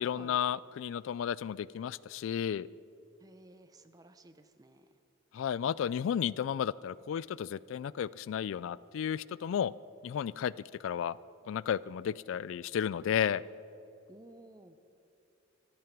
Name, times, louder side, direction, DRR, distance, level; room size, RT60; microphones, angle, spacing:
voice 1, 0.0-2.7 5.3-9.7 10.0-10.5 10.8-11.2 11.5-13.4, left 8 dB, 75° left, 21 dB, 0.3 m, -33 dB
voice 2, 3.2-4.9 14.1-14.8, right 1 dB, 20° right, 10 dB, 0.6 m, -55 dB
14.0 x 13.0 x 6.0 m, 2.8 s
head